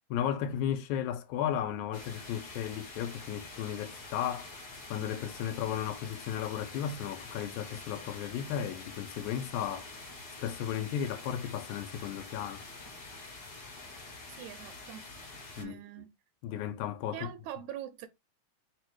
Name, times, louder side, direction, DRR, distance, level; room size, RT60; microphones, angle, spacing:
voice 1, 0.1-4.5 4.9-9.9 10.4-12.6 15.6-15.8 16.4-17.3, left 9 dB, 90° left, 2.0 m, -34 dB
sound 1, 1.9-15.6, left 3 dB, 50° left, 1.3 m, -47 dB
voice 2, 14.3-15.0 15.6-16.1 17.1-18.1, right 11 dB, 80° right, 1.8 m, -43 dB
4.7 x 2.2 x 4.5 m
omnidirectional pair, 3.4 m